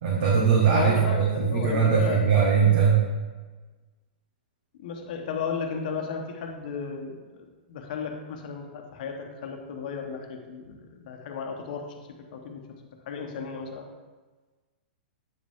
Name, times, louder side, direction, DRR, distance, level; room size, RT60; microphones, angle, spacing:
voice 1, 0.0-3.0, right 6 dB, 60° right, -4 dB, 1.5 m, -21 dB
voice 2, 0.7-2.2 2.7-2.8 4.8-11.8 12.3-12.6 13.1-13.9, left 6 dB, 55° left, 3 dB, 1.1 m, -34 dB
8.6 x 5.1 x 3.6 m, 1.3 s
hypercardioid pair, 145°, 5 cm